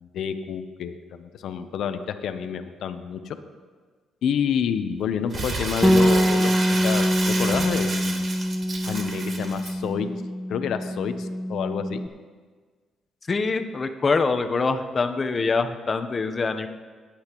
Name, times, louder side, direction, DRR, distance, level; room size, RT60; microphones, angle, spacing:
voice 1, 0.0-3.4 4.2-8.3 8.8-10.1 10.5-12.0, left 7 dB, 75° left, 9 dB, 0.7 m, -29 dB
Crumpling crinkling, 5.3-9.7, right 3 dB, 45° right, 1.6 m, -30 dB
Bass guitar, 5.8-12.1, equal, ahead, 0.3 m, -24 dB
voice 2, 13.2-16.7, left 4 dB, 35° left, 8 dB, 0.8 m, -24 dB
17.5 x 8.6 x 3.0 m, 1.5 s
cardioid pair, 90°, 0 cm